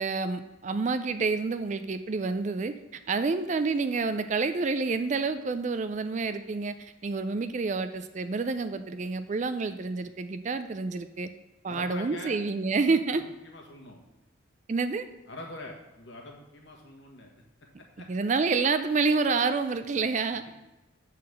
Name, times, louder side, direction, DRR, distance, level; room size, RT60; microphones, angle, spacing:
voice 1, 0.0-2.7 3.1-11.3 11.6-13.2 14.7-15.1 18.1-20.5, right 4 dB, 35° right, 11 dB, 0.4 m, -28 dB
voice 2, 11.6-12.4 13.1-14.0 15.3-17.3 17.8-18.1 20.3-20.5, left 2 dB, 60° left, 0 dB, 1.5 m, -44 dB
7.5 x 4.1 x 6.4 m, 1.0 s
head